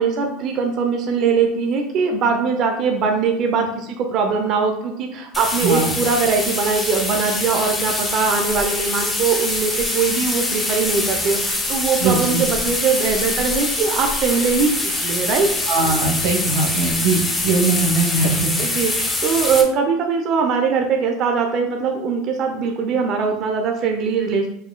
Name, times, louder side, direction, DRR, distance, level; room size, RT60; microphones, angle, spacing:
voice 1, 0.0-15.5 18.6-24.5, right 5 dB, 45° right, 3 dB, 0.6 m, -21 dB
sound 1, 5.3-19.6, left 2 dB, 10° left, 0.9 m, -24 dB
voice 2, 5.6-6.0 12.0-12.4 15.7-18.5, right 3 dB, 85° right, 1 dB, 1.0 m, -20 dB
4.9 x 4.8 x 2.2 m, 0.76 s
supercardioid pair, 115°, 0 cm